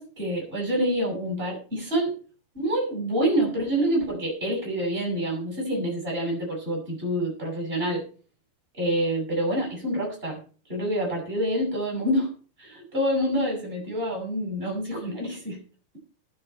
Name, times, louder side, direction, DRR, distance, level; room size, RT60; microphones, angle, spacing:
voice 1, 0.0-2.2 2.5-8.0 8.7-10.4 10.7-15.6, equal, 15° right, -1 dB, 6.7 m, -27 dB
20.0 x 7.7 x 4.5 m, 0.39 s
omnidirectional pair, 3.7 m